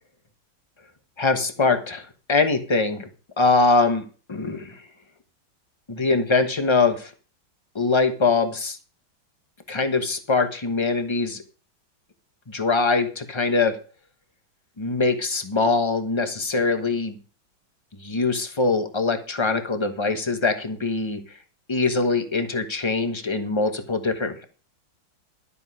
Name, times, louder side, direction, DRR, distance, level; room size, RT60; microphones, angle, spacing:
voice 1, 1.2-3.1 3.4-4.9 5.9-7.1 7.7-8.8 9.7-11.4 12.5-13.8 14.8-17.1 18.0-21.2 21.7-24.4, left 3 dB, 20° left, 7 dB, 0.7 m, -23 dB
12.0 x 8.5 x 4.8 m, 0.38 s
omnidirectional pair, 2.2 m